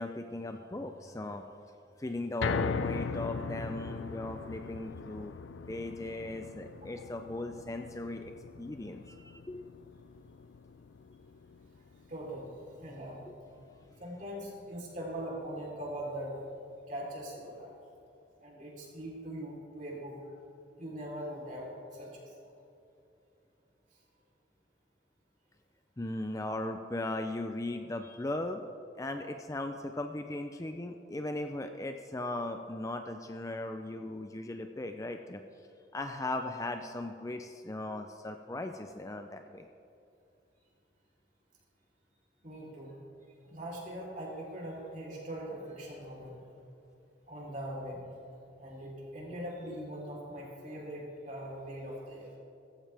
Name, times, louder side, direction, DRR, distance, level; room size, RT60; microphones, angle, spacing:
voice 1, 0.0-1.5 2.0-5.3 5.7-8.2 8.6-9.6 26.0-28.6 29.0-35.4 35.9-39.7 49.6-49.8, left 2 dB, 15° left, 6 dB, 0.4 m, -38 dB
sound 1, 2.4-14.7 15.1-15.2 15.6-15.7, left 5 dB, 80° left, 0.4 m, -40 dB
voice 2, 12.1-13.2 14.0-16.3 16.9-17.7 18.4-20.2 20.8-22.2 42.4-42.9 43.4-46.3 47.3-48.0 48.6-52.3, right 1 dB, 40° right, -3 dB, 3.7 m, -41 dB
16.5 x 15.0 x 3.4 m, 2.7 s
head